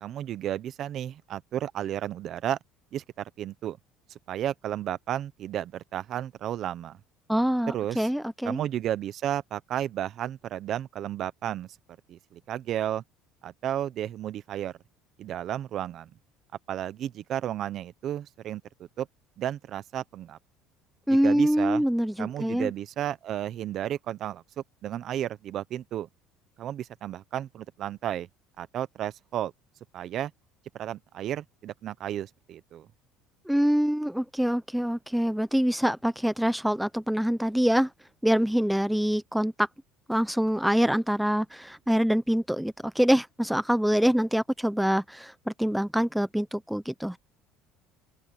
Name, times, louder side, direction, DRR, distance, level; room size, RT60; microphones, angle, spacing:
voice 1, 0.0-2.6 2.9-3.0 3.4-3.8 4.1-7.0 7.7-8.1 8.4-11.7 12.1-13.0 13.4-14.7 15.2-16.1 16.7-18.6 19.0-19.1 19.4-20.4 21.1-21.8 22.2-24.4 24.8-26.1 26.6-28.3 28.6-29.5 29.9-30.3 30.7-32.9, right 11 dB, 40° right, 0.8 m, -33 dB
voice 2, 7.3-8.6 21.1-22.7 33.5-37.9 38.2-39.7 40.1-47.2, equal, ahead, 0.5 m, -25 dB
open air
cardioid pair, 160°, 0 cm